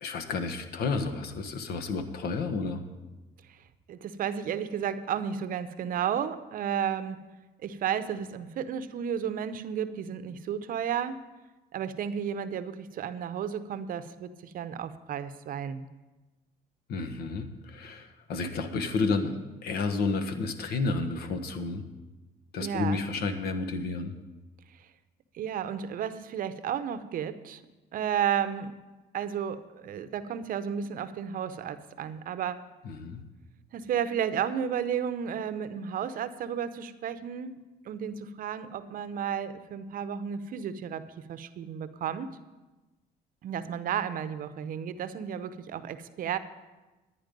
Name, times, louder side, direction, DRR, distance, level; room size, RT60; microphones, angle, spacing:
voice 1, 0.0-2.8 16.9-21.9 22.5-24.1 32.8-33.2, left 4 dB, 65° left, 8 dB, 1.1 m, -31 dB
voice 2, 3.9-7.2 7.6-11.2 11.7-15.9 22.6-23.0 24.8-24.9 25.3-27.6 27.9-28.7 29.1-32.6 33.7-37.5 37.8-42.3 43.4-46.4, right 8 dB, 55° right, 12 dB, 0.7 m, -33 dB
10.5 x 10.0 x 5.2 m, 1.1 s
cardioid pair, 110°, 17 cm